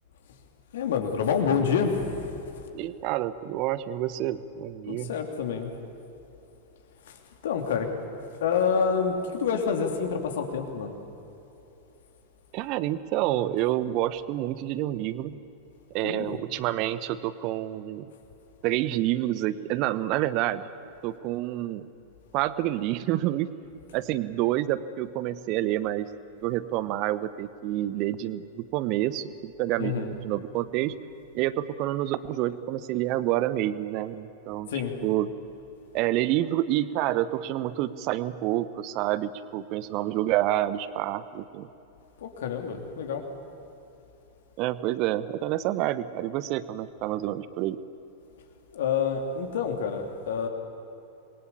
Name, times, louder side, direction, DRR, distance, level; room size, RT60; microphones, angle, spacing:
voice 1, 0.7-2.4 4.9-5.7 7.1-7.2 7.4-7.9 8.4-10.9 16.0-16.4 29.8-30.1 34.7-34.9 42.2-43.2 48.7-50.5, left 6 dB, 60° left, 4 dB, 3.2 m, -27 dB
voice 2, 2.7-5.1 12.5-15.4 15.9-18.1 18.6-20.7 21.0-21.9 22.3-23.5 23.9-26.1 26.4-30.9 31.3-34.7 35.0-35.3 35.9-41.7 44.6-47.8, right 14 dB, 40° right, 15 dB, 1.1 m, -28 dB
27.0 x 22.5 x 8.4 m, 3.0 s
figure-of-eight pair, 90°, 0 cm